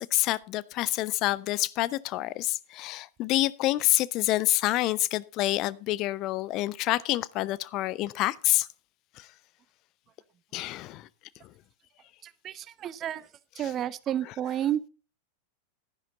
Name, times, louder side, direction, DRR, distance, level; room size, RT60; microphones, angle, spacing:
voice 1, 0.0-8.7 10.5-11.1 13.6-13.7, left 16 dB, 40° left, 0.5 m, -27 dB
voice 2, 12.2-13.2 13.6-14.9, right 11 dB, 30° right, 0.6 m, -31 dB
11.5 x 10.0 x 3.9 m
figure-of-eight pair, 90°, 0 cm